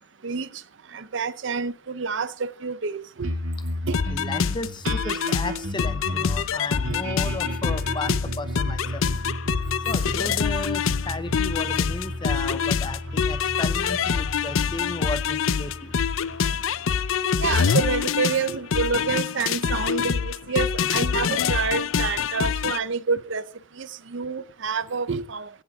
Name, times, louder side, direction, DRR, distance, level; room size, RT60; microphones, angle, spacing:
voice 1, 0.9-3.3 3.9-4.0 6.9-7.0 8.1-8.2 17.4-23.4 23.8-25.5, right 5 dB, 65° right, 0.6 m, -28 dB
sound 1, 3.2-17.9, equal, 85° right, 1.9 m, -33 dB
sound 2, 3.9-22.8, left 6 dB, 85° left, 0.5 m, -25 dB
voice 2, 4.1-9.0 9.9-15.9, left 2 dB, 25° left, 0.7 m, -34 dB
16.0 x 8.5 x 3.6 m
head